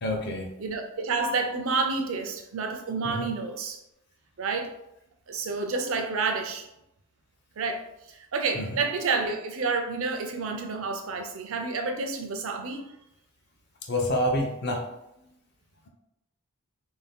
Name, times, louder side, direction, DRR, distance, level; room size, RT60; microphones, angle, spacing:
voice 1, 0.0-0.5 3.0-3.3 8.5-8.8 13.8-14.8 15.2-15.3, left 1 dB, 50° left, 1 dB, 0.5 m, -28 dB
voice 2, 0.6-3.8 4.4-4.7 5.3-6.7 7.6-7.8 8.1-12.8, right 4 dB, 70° right, 5 dB, 0.4 m, -29 dB
2.6 x 2.2 x 3.4 m, 0.84 s
head